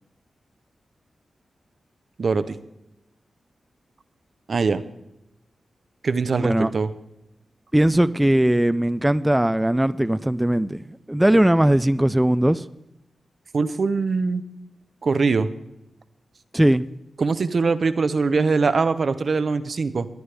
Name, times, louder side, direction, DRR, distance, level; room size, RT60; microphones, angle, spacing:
voice 1, 2.2-2.6 4.5-4.8 6.0-6.9 13.5-14.4 15.0-15.5 17.2-20.1, right 4 dB, 60° right, 0.8 m, -22 dB
voice 2, 6.4-6.7 7.7-12.6 16.5-16.8, right 1 dB, 10° right, 0.4 m, -19 dB
21.0 x 9.5 x 3.4 m
cardioid pair, 50°, 0 cm